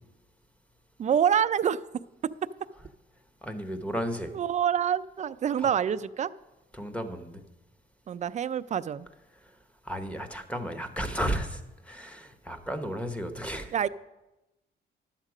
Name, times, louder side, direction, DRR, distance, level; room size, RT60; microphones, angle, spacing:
voice 1, 1.0-1.8 4.3-6.3 8.1-9.1 13.7-13.9, right 8 dB, 35° right, 14 dB, 0.4 m, -26 dB
voice 2, 3.4-4.3 5.6-5.7 6.7-7.4 9.4-9.5 9.8-13.7, equal, 5° left, 9 dB, 0.9 m, -34 dB
11.0 x 7.4 x 4.9 m, 0.99 s
cardioid pair, 90°, 20 cm